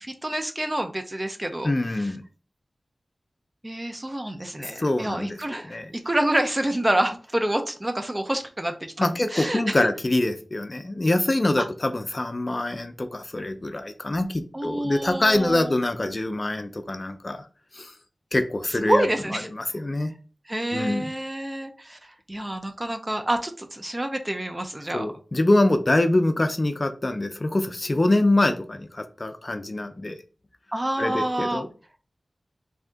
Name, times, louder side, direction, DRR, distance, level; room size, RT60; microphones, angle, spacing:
voice 1, 0.0-1.7 2.0-2.1 3.6-9.8 11.6-11.7 14.5-15.7 18.9-19.5 20.5-25.1 30.7-31.6, right 1 dB, 25° right, 7 dB, 0.6 m, -28 dB
voice 2, 1.6-2.2 4.6-5.9 9.0-17.4 17.7-17.9 18.3-19.1 19.3-20.1 20.7-21.1 24.9-30.2 31.0-31.7, left 2 dB, 40° left, 8 dB, 0.4 m, -24 dB
3.6 x 2.8 x 3.4 m, 0.37 s
wide cardioid pair, 65°, 0 cm